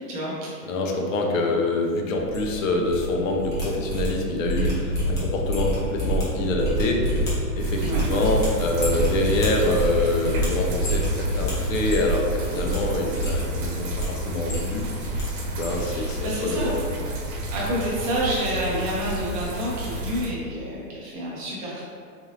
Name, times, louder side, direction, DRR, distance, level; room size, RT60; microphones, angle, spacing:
voice 1, 0.1-0.5 7.8-8.1 15.8-16.7 17.5-21.8, equal, 25° right, -6 dB, 0.6 m, -29 dB
voice 2, 0.7-14.9 15.5-16.7, left 2 dB, 55° left, 1 dB, 0.7 m, -26 dB
sound 1, 2.1-3.0 3.3-12.2 12.5-12.8 13.1-14.0 14.4-15.2 15.5-16.3 16.6-17.0 17.2-17.4, right 1 dB, 15° left, 0.5 m, -27 dB
sound 2, 7.6-20.3, right 2 dB, 65° right, 1.0 m, -31 dB
4.0 x 2.6 x 3.2 m, 2.3 s
hypercardioid pair, 160°, 48 cm